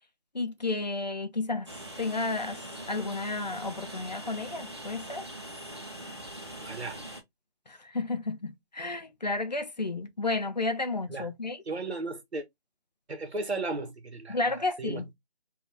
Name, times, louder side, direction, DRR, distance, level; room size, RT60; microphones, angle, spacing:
voice 1, 0.3-1.7 2.0-2.6 2.9-5.2 7.7-11.6 14.3-15.1, left 3 dB, 40° left, 0.6 m, -32 dB
Train, 1.7-7.2, right 1 dB, 25° right, 0.7 m, -42 dB
voice 2, 6.6-7.0 11.1-11.3 11.6-12.4 13.1-15.1, right 2 dB, 80° right, 1.3 m, -35 dB
3.6 x 2.6 x 3.4 m
figure-of-eight pair, 170°, 32 cm